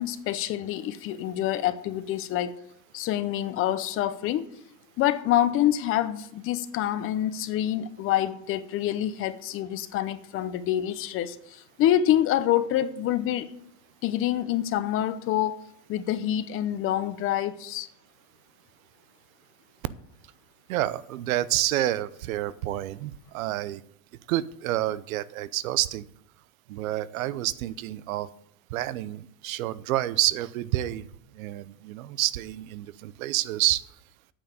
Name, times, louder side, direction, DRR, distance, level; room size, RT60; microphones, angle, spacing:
voice 1, 0.0-2.5 2.9-4.4 5.0-13.5 14.0-15.6 15.9-17.9, left 12 dB, 35° left, 14 dB, 0.6 m, -26 dB
voice 2, 20.7-23.8 24.3-26.0 26.7-28.3 28.7-31.1 31.4-33.8, right 15 dB, 90° right, 18 dB, 0.7 m, -28 dB
8.9 x 7.2 x 7.6 m, 0.74 s
supercardioid pair, 145°, 40 cm